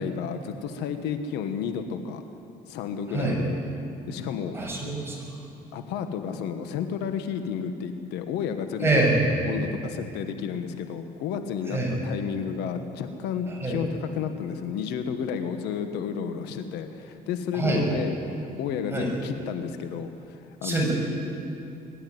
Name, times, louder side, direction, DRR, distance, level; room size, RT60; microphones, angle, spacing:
voice 1, 0.0-2.2 2.7-3.6 4.1-4.5 5.7-9.0 9.4-20.8, left 7 dB, 90° left, 7 dB, 1.4 m, -31 dB
voice 2, 3.1-3.4 4.5-5.2 8.8-9.2 11.7-11.9 13.6-13.8 17.5-18.0 18.9-19.1 20.6-20.9, right 2 dB, 15° right, -2 dB, 6.9 m, -25 dB
22.5 x 12.5 x 9.5 m, 2.7 s
cardioid pair, 110°, 17 cm